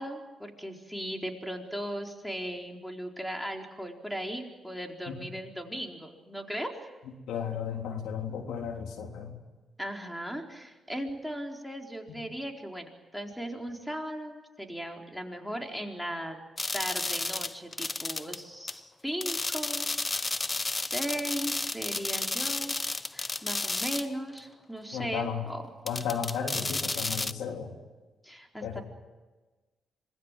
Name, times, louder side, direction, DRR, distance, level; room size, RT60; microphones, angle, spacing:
voice 1, 0.0-6.7 9.8-16.4 16.7-19.9 20.7-22.8 23.1-25.6 28.2-28.8, equal, ahead, 3 dB, 4.4 m, -37 dB
voice 2, 7.3-9.4 24.9-25.5 25.8-27.8 28.6-28.8, left 7 dB, 80° left, 4 dB, 3.4 m, -34 dB
sound 1, 16.6-18.4 18.7-18.8 19.2-24.1 24.4-24.5 25.9-27.3, left 3 dB, 25° left, 0.8 m, -32 dB
26.5 x 21.0 x 7.6 m, 1.2 s
supercardioid pair, 60°, 0 cm